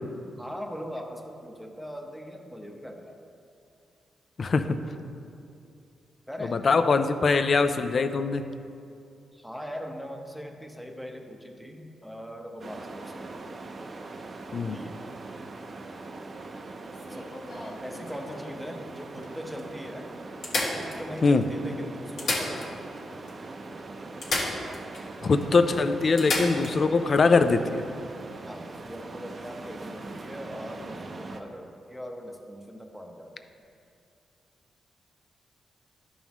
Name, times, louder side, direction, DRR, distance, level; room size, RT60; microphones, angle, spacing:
voice 1, 0.4-3.2 6.3-6.6 9.3-13.3 14.7-15.0 17.1-20.1 20.5-22.9 28.5-33.4, equal, ahead, 3 dB, 0.8 m, -40 dB
voice 2, 4.4-4.8 6.4-8.5 14.5-14.8 21.2-21.5 25.2-27.8, left 4 dB, 50° left, 9 dB, 0.4 m, -22 dB
sound 1, 12.6-31.4, right 3 dB, 40° right, 0.6 m, -41 dB
sound 2, 16.9-18.5 19.2-19.3 19.6-19.7 20.4-21.4 22.0-23.0 23.3-23.4 24.2-25.1 25.4-25.5 26.2-26.8 28.7-28.9, left 2 dB, 70° left, 1.5 m, -32 dB
12.5 x 5.5 x 3.0 m, 2.5 s
cardioid pair, 90°, 0 cm